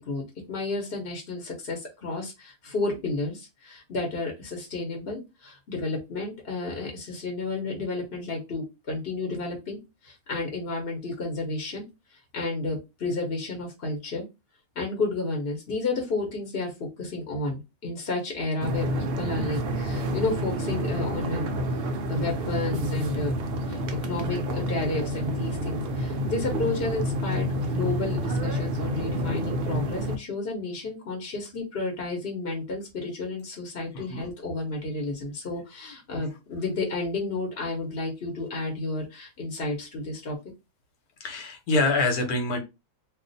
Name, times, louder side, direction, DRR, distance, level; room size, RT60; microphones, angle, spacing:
voice 1, 0.0-9.8 10.0-11.8 12.3-14.2 14.7-21.8 22.1-23.3 23.6-40.3, left 3 dB, 45° left, 1 dB, 1.0 m, -31 dB
sound 1, 18.6-30.2, equal, 75° right, 0.5 m, -29 dB
voice 2, 33.9-34.3 36.1-36.2 41.2-42.6, left 2 dB, 80° left, 4 dB, 1.3 m, -26 dB
2.5 x 2.4 x 3.9 m, 0.24 s
omnidirectional pair, 1.6 m